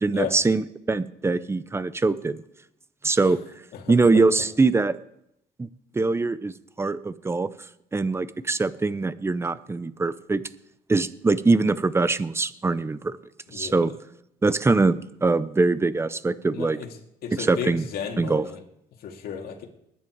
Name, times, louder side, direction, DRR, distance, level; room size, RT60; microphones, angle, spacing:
voice 1, 0.0-2.4 3.0-3.4 3.9-5.0 5.6-5.7 5.9-7.5 7.9-10.4 10.9-13.2 13.5-13.9 14.4-16.8 17.3-17.8 18.2-18.4, right 3 dB, 15° right, 15 dB, 0.7 m, -23 dB
voice 2, 3.7-4.2 13.5-13.9 16.5-16.9 17.2-18.6 19.0-19.7, left 7 dB, 65° left, 2 dB, 2.3 m, -34 dB
20.0 x 10.5 x 4.7 m, 0.79 s
cardioid pair, 110°, 17 cm